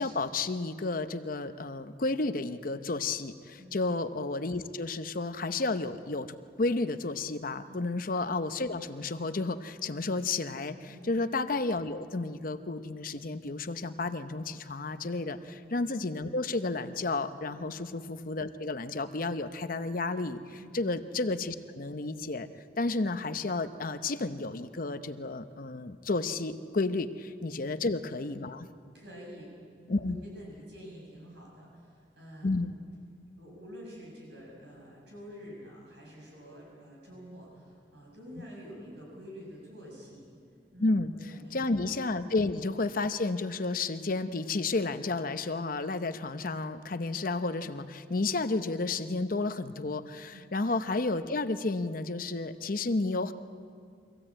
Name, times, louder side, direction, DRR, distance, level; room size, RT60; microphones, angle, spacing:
voice 1, 0.0-22.5 22.8-28.7 29.9-30.2 32.4-32.7 40.8-53.3, left 3 dB, 50° left, 10 dB, 0.8 m, -32 dB
voice 2, 28.9-32.6 33.4-40.3 40.7-40.9 41.3-41.7 50.3-50.4, equal, 70° right, -3 dB, 7.3 m, -48 dB
24.0 x 16.0 x 8.8 m, 2.3 s
head